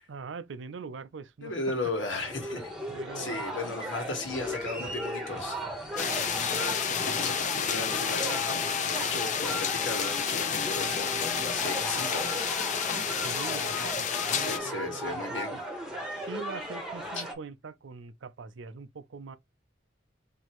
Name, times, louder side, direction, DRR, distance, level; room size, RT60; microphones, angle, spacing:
voice 1, 0.1-1.5 2.9-4.2 6.3-8.8 11.7-12.0 13.2-15.6 16.3-19.4, right 4 dB, 80° right, 0.5 m, -43 dB
voice 2, 1.4-2.7 3.1-5.6 7.2-7.3 7.6-12.7 14.3-15.6 16.1-16.3 17.1-17.2, left 3 dB, 90° left, 1.6 m, -36 dB
sound 1, 2.1-17.3, equal, 5° right, 1.0 m, -36 dB
sound 2, 6.0-14.6, left 7 dB, 40° left, 0.6 m, -30 dB
4.4 x 2.8 x 3.0 m
head